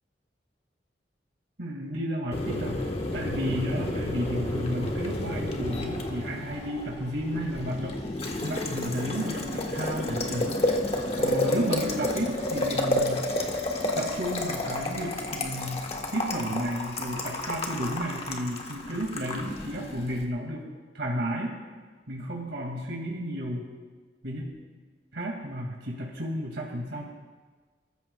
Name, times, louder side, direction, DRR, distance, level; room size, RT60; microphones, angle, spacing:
voice 1, 1.6-8.0 8.4-10.7 11.2-13.3 14.0-20.7 20.9-21.6 22.1-23.7 24.2-24.4 25.1-27.1, equal, 85° right, -2 dB, 2.3 m, -32 dB
Boiling, 2.3-20.2, left 1 dB, 35° left, 1.4 m, -31 dB
28.5 x 14.0 x 2.4 m, 1.4 s
head